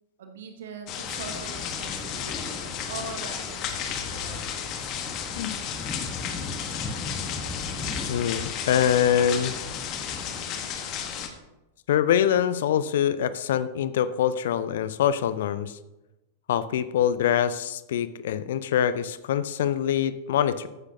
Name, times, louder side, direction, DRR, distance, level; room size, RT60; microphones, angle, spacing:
voice 1, 0.2-5.0, right 5 dB, 60° right, 6 dB, 1.2 m, -42 dB
sound 1, 0.9-11.3, left 8 dB, 40° left, 1.3 m, -33 dB
sound 2, 1.0-10.4, left 2 dB, 20° left, 1.3 m, -39 dB
voice 2, 8.1-9.5 11.9-15.8 16.5-20.7, left 9 dB, 60° left, 14 dB, 0.6 m, -24 dB
14.5 x 9.7 x 2.8 m, 1.0 s
figure-of-eight pair, 90°, 0 cm